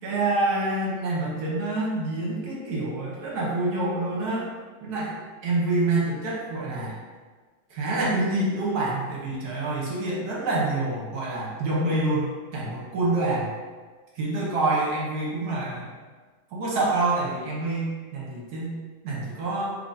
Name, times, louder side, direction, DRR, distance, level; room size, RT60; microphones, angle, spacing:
voice 1, 0.0-4.5 4.8-7.0 7.7-13.5 14.2-15.9 16.5-18.8 19.0-19.7, right 2 dB, 60° right, -4 dB, 1.2 m, -27 dB
3.7 x 3.3 x 2.6 m, 1.4 s
omnidirectional pair, 2.1 m